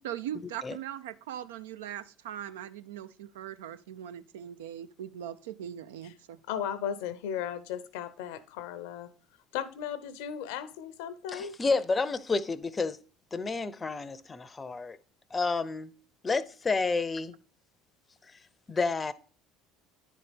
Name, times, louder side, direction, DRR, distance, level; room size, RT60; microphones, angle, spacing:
voice 1, 0.0-6.4, right 10 dB, 75° right, 0.4 m, -40 dB
voice 2, 6.5-9.1 9.5-11.5, left 9 dB, 70° left, 0.6 m, -36 dB
voice 3, 11.3-13.0 13.3-15.0 15.3-15.9 16.2-17.4 18.7-19.1, left 4 dB, 25° left, 0.5 m, -30 dB
10.0 x 4.1 x 3.4 m
hypercardioid pair, 65°, 0 cm